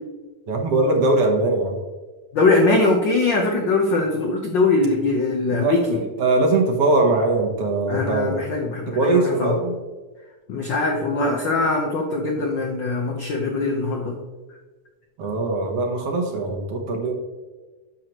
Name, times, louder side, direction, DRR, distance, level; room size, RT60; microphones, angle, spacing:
voice 1, 0.5-1.8 5.5-8.4 8.9-9.7 15.2-17.1, right 2 dB, 65° right, 2 dB, 1.8 m, -21 dB
voice 2, 2.3-6.0 7.9-9.6 10.5-14.1, left 3 dB, 80° left, 1 dB, 1.0 m, -21 dB
10.5 x 6.6 x 3.0 m, 1.3 s
omnidirectional pair, 3.3 m